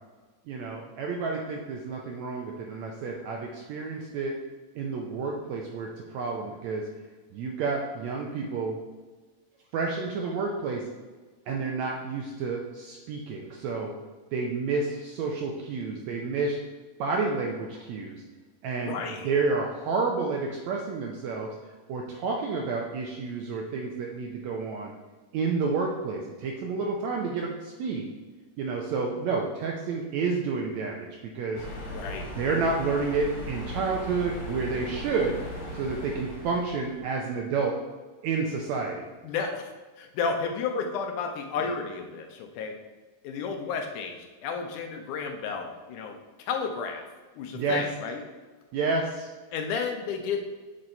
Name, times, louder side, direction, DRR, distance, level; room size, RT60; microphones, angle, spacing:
voice 1, 0.5-4.3 4.8-6.8 7.3-8.7 9.7-10.8 11.5-13.9 14.3-16.6 17.0-18.2 18.6-19.0 19.2-21.5 21.9-24.9 25.3-28.1 28.6-31.6 32.4-35.4 35.7-37.7 38.2-39.1 47.5-47.8 48.7-49.3, right 4 dB, 75° right, 0 dB, 1.6 m, -30 dB
voice 2, 18.8-19.3 31.9-32.3 39.2-39.7 40.0-42.8 43.2-46.2 46.5-47.0 47.4-48.2 49.5-50.4, left 5 dB, 75° left, 4 dB, 2.0 m, -32 dB
sound 1, 31.5-37.1, left 1 dB, 50° left, 3.3 m, -38 dB
7.7 x 4.0 x 4.3 m, 1.3 s
omnidirectional pair, 3.9 m